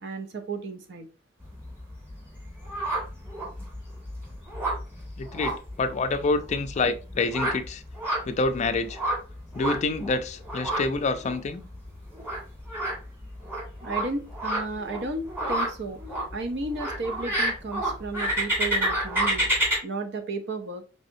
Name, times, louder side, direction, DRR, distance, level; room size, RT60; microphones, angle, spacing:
voice 1, 0.0-1.1 13.8-16.0 16.3-19.5 19.8-20.8, right 3 dB, 65° right, 0.6 m, -33 dB
sound 1, 1.4-19.8, right 1 dB, 10° right, 1.8 m, -31 dB
voice 2, 5.2-7.8 8.3-9.0 9.5-11.6, left 3 dB, 35° left, 0.4 m, -27 dB
4.1 x 3.4 x 2.6 m
head